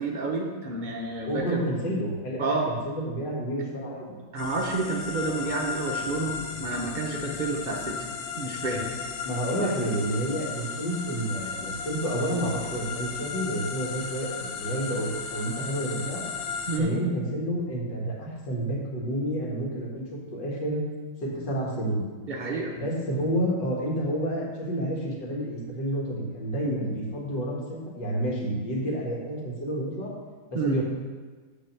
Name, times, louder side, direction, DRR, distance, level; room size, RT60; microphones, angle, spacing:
voice 1, 0.0-1.6 2.4-2.7 4.3-8.0 8.4-8.9 9.6-9.7 16.7-16.9 22.3-22.7 23.0-23.1 26.6-26.8 30.5-30.8, right 3 dB, 90° right, -1 dB, 0.4 m, -30 dB
voice 2, 1.2-4.2 9.2-16.2 16.8-20.0 20.3-20.8 21.2-22.1 22.7-30.1 30.5-30.8, right 1 dB, 60° left, -3 dB, 2.4 m, -29 dB
sound 1, 4.4-16.8, left 5 dB, 80° left, 1.5 m, -35 dB
9.4 x 4.0 x 6.7 m, 1.4 s
omnidirectional pair, 2.2 m